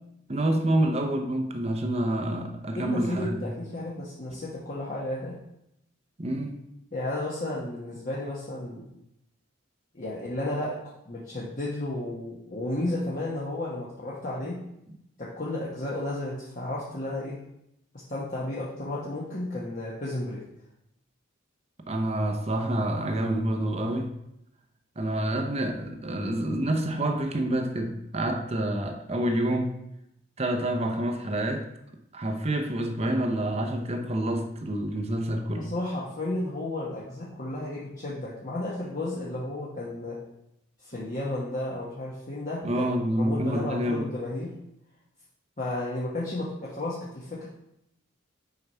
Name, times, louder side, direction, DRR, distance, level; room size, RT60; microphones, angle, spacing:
voice 1, 0.3-3.4 6.2-6.6 21.9-24.1 25.0-29.8 30.4-31.7 32.1-35.7 42.6-44.1, right 1 dB, 30° right, 5 dB, 0.7 m, -28 dB
voice 2, 2.7-5.3 6.9-8.8 9.9-10.8 11.0-14.6 15.2-17.4 18.1-20.4 35.6-40.2 40.8-42.9 43.2-44.5 45.6-47.5, left 1 dB, 40° left, -7 dB, 1.2 m, -33 dB
7.0 x 4.7 x 5.6 m, 0.83 s
head